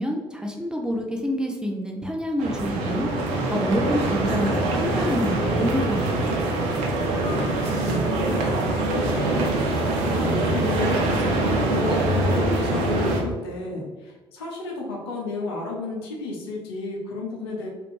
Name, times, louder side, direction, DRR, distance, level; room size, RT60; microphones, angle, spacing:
voice 1, 0.0-3.1 3.5-6.4, equal, 5° right, 0 dB, 0.6 m, -27 dB
sound 1, 2.4-13.2, right 2 dB, 60° right, 0.6 m, -24 dB
voice 2, 7.4-8.6 8.9-17.7, left 3 dB, 70° left, -1 dB, 0.7 m, -33 dB
3.2 x 2.5 x 3.1 m, 1.2 s
figure-of-eight pair, 50°, 14 cm